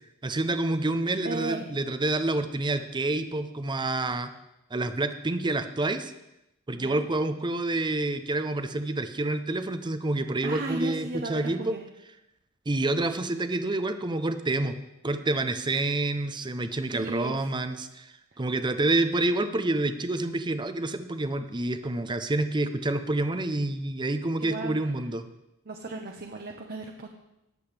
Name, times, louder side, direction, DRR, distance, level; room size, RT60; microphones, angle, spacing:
voice 1, 0.2-4.3 4.7-6.1 6.7-11.7 12.7-14.7 15.0-25.3, right 2 dB, 20° right, 10 dB, 0.7 m, -28 dB
voice 2, 1.2-1.7 6.8-7.0 10.4-11.8 16.9-17.5 18.3-18.4 24.4-24.7 25.7-27.1, right 2 dB, 45° right, 2 dB, 0.9 m, -35 dB
20.0 x 7.7 x 3.4 m, 0.89 s
head